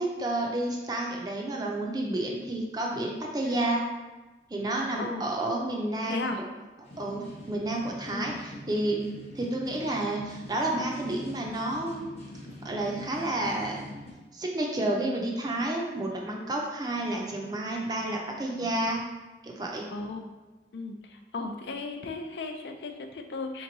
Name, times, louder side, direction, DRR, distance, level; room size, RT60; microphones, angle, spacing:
voice 1, 0.0-3.8 4.5-6.3 7.0-9.1 9.3-12.1 12.6-13.8 14.3-19.0 19.4-19.9, right 1 dB, 25° right, 0 dB, 0.5 m, -30 dB
voice 2, 6.1-6.4 8.1-8.2 19.9-20.3 20.7-23.6, left 3 dB, 75° left, 5 dB, 0.4 m, -36 dB
sound 1, 6.8-14.1, left 1 dB, 35° left, 0.8 m, -44 dB
3.5 x 2.9 x 4.0 m, 1.2 s
head